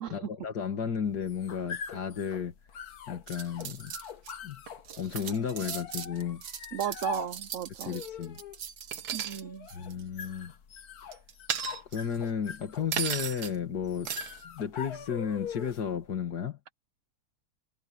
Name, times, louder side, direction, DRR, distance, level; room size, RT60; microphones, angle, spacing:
voice 1, 0.1-2.5 3.1-3.9 4.4-4.6 5.0-6.4 7.8-8.4 9.7-10.5 11.9-14.1 14.4-16.6, left 7 dB, 90° left, 2.4 m, -33 dB
sound 1, 1.1-16.0, left 7 dB, 70° left, 1.6 m, -43 dB
sound 2, 3.3-4.3 4.7-9.4 9.7-10.0 11.1-12.2 12.9-13.6 14.1-14.4, right 8 dB, 75° right, 1.8 m, -36 dB
voice 2, 6.7-8.0 9.1-9.7, right 9 dB, 60° right, 0.9 m, -35 dB
omnidirectional pair, 1.7 m